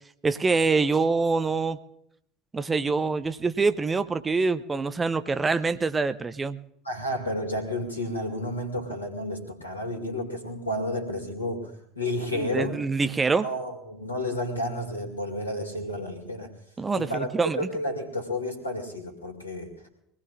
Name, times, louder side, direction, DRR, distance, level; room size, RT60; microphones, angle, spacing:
voice 1, 0.2-1.8 2.5-6.6 12.3-13.5 16.8-17.7, right 4 dB, 20° right, 13 dB, 0.7 m, -25 dB
voice 2, 6.8-12.8 13.4-16.5 17.0-19.7, left 1 dB, 85° left, 3 dB, 2.4 m, -31 dB
23.5 x 18.5 x 2.5 m, 0.74 s
figure-of-eight pair, 65°, 0 cm